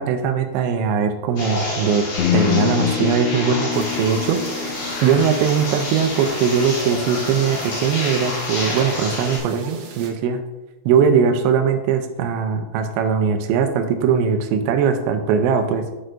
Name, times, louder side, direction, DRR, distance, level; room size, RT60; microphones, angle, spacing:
voice 1, 0.0-2.1 2.3-4.4 5.0-10.4 10.9-15.8, right 6 dB, 85° right, 6 dB, 2.9 m, -20 dB
sound 1, 1.4-9.4, left 2 dB, 65° left, 4.7 m, -28 dB
sound 2, 2.2-6.3, left 10 dB, 85° left, 2.4 m, -25 dB
sound 3, 3.7-10.1, right 5 dB, 70° right, 2.9 m, -40 dB
11.0 x 6.3 x 2.6 m, 1.0 s
omnidirectional pair, 5.1 m